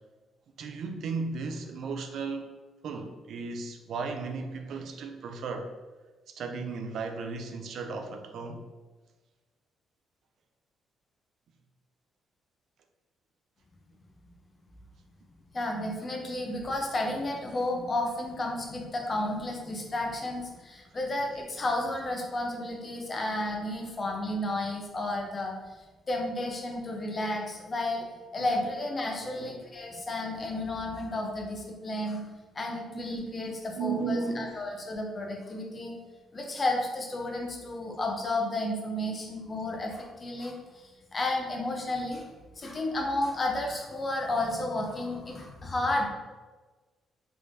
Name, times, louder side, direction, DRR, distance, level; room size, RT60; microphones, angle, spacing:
voice 1, 0.6-2.5 2.8-5.7 6.3-8.7 28.4-28.5 29.4-29.8 32.9-34.6, right 4 dB, 70° right, 6 dB, 0.4 m, -35 dB
voice 2, 15.5-28.1 28.3-32.2 32.5-35.9 36.3-42.3 42.6-46.1, left 1 dB, 35° left, 1 dB, 0.7 m, -32 dB
3.3 x 3.2 x 2.7 m, 1.3 s
cardioid pair, 90°, 0 cm